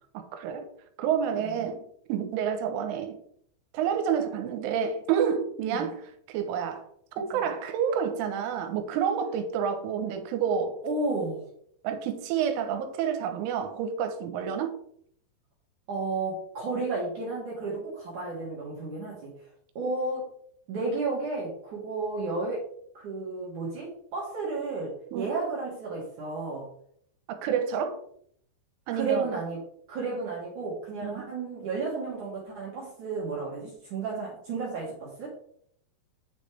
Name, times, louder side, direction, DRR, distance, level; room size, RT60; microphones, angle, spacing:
voice 1, 0.1-0.7 1.0-3.2 3.7-6.0 6.3-6.9 7.2-10.8 11.8-14.8 25.1-25.3 27.3-28.0 28.9-29.3 31.0-31.2, right 7 dB, 85° right, 3.3 m, -29 dB
voice 2, 5.6-5.9 7.3-7.5 10.8-11.4 15.9-19.3 19.8-20.3 20.7-22.7 22.9-26.7 28.9-29.6 29.9-35.3, right 3 dB, 55° right, 2.3 m, -32 dB
9.6 x 5.3 x 3.3 m
omnidirectional pair, 5.6 m